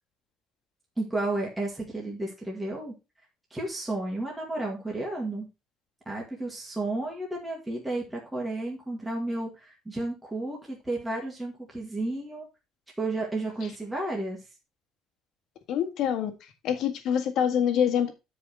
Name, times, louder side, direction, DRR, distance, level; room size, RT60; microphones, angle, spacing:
voice 1, 1.0-2.9 3.5-5.5 6.1-12.5 13.0-14.4, right 2 dB, 5° right, -2 dB, 1.9 m, -32 dB
voice 2, 15.7-16.3 16.6-18.1, left 8 dB, 55° left, 5 dB, 1.7 m, -25 dB
9.9 x 5.0 x 4.3 m, 0.26 s
cardioid pair, 175°, 0 cm